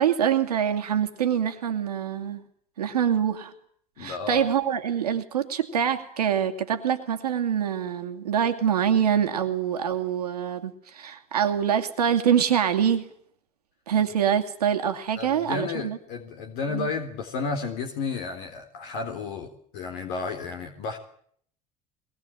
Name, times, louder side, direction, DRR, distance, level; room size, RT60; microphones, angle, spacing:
voice 1, 0.0-2.4 2.8-3.5 4.0-13.1 13.9-16.0 16.7-16.9, right 8 dB, 90° right, 6 dB, 2.4 m, -25 dB
voice 2, 4.0-4.4 15.2-21.0, left 4 dB, 70° left, 5 dB, 3.7 m, -32 dB
22.5 x 21.5 x 9.0 m, 0.63 s
hypercardioid pair, 70°, 19 cm